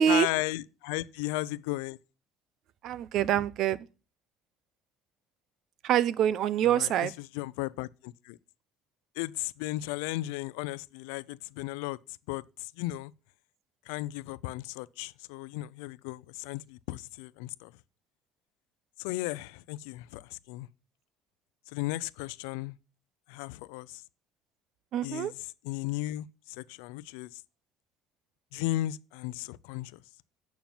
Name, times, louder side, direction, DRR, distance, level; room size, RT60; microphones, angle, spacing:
voice 1, 0.1-2.0 6.6-8.4 9.2-12.0 12.3-13.1 13.9-17.7 19.0-20.7 21.7-22.8 23.3-24.0 25.0-27.4 28.5-30.0, left 17 dB, 90° left, 0.5 m, -35 dB
voice 2, 2.8-3.8 5.8-7.1 24.9-25.3, right 9 dB, 65° right, 0.7 m, -25 dB
9.3 x 5.9 x 7.2 m
supercardioid pair, 95°, 0 cm